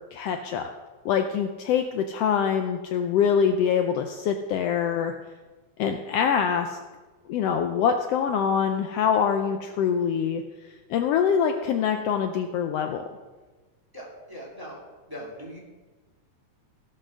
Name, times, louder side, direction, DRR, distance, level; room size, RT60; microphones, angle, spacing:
voice 1, 0.1-0.7 1.0-5.1 5.8-6.8 7.3-10.4 10.9-13.0, left 7 dB, 85° left, 5 dB, 1.3 m, -24 dB
voice 2, 13.9-14.8 15.1-15.6, equal, 5° right, -5 dB, 2.5 m, -40 dB
16.0 x 6.5 x 6.3 m, 1.3 s
omnidirectional pair, 3.6 m